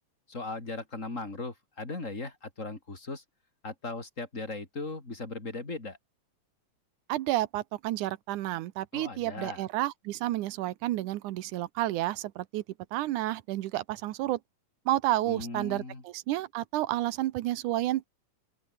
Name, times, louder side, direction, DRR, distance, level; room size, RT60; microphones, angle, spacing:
voice 1, 0.3-3.2 3.6-6.0 8.9-9.7 15.3-16.0, left 3 dB, 25° left, 4.4 m, -38 dB
voice 2, 7.1-12.6 12.9-14.4 14.9-18.1, right 15 dB, 80° right, 2.4 m, -30 dB
open air
omnidirectional pair, 3.5 m